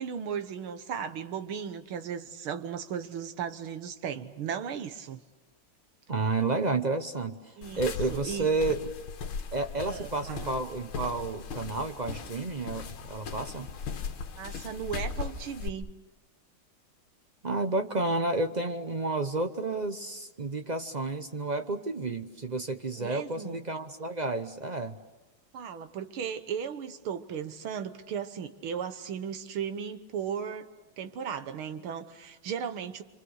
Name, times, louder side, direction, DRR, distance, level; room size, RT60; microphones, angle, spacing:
voice 1, 0.0-5.2 7.6-8.5 9.9-10.5 14.4-15.9 23.0-23.6 25.5-30.7 31.0-33.0, right 7 dB, 85° right, 10 dB, 2.1 m, -36 dB
voice 2, 6.1-7.4 7.8-8.8 9.5-13.7 17.4-25.0, right 3 dB, 45° right, 7 dB, 0.5 m, -31 dB
sound 1, 7.6-15.7, left 5 dB, 80° left, 2.0 m, -38 dB
27.5 x 26.5 x 6.5 m, 1.1 s
omnidirectional pair, 2.3 m